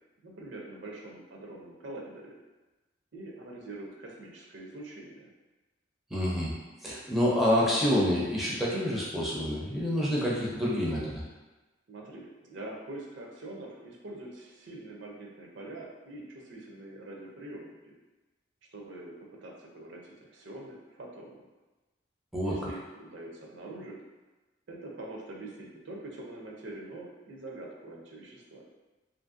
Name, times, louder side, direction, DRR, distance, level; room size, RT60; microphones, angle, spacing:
voice 1, 0.2-2.4 3.1-5.3 11.9-17.9 18.7-21.5 22.4-24.0 24.7-28.6, right 2 dB, 70° right, -2 dB, 0.5 m, -44 dB
voice 2, 6.1-6.5 6.8-11.2 22.3-22.5, equal, ahead, -6 dB, 0.4 m, -27 dB
2.8 x 2.5 x 2.5 m, 1.2 s
head